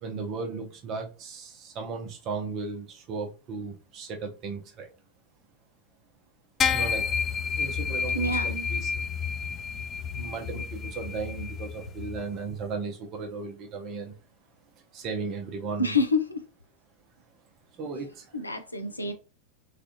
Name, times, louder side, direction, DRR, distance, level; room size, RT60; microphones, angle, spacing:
voice 1, 0.0-4.9 6.7-7.1 7.5-9.1 9.7-9.8 10.1-14.1 14.9-16.0 17.8-18.3 19.0-19.1, right 4 dB, 35° right, 0.7 m, -36 dB
sound 1, 6.6-12.2, left 6 dB, 25° left, 0.3 m, -30 dB
voice 2, 8.1-8.7 15.8-16.4 18.3-19.1, left 3 dB, 85° left, 0.5 m, -27 dB
3.3 x 2.4 x 2.7 m
figure-of-eight pair, 90°, 0 cm